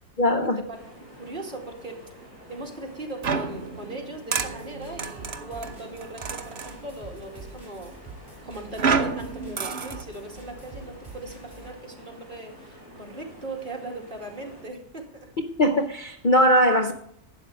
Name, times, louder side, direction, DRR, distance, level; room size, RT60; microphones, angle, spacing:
voice 1, 0.2-0.6 15.4-16.9, equal, 40° left, 0.7 m, -20 dB
sound 1, 0.7-14.7, equal, 70° left, 5.9 m, -49 dB
voice 2, 1.1-2.0 2.5-7.9 8.4-15.3, right 2 dB, 30° right, 2.5 m, -39 dB
sound 2, 3.2-6.8 8.8-10.0, right 5 dB, 45° right, 1.2 m, -29 dB
sound 3, 4.4-11.7, right 3 dB, 15° right, 5.2 m, -46 dB
12.0 x 9.1 x 4.7 m
omnidirectional pair, 1.6 m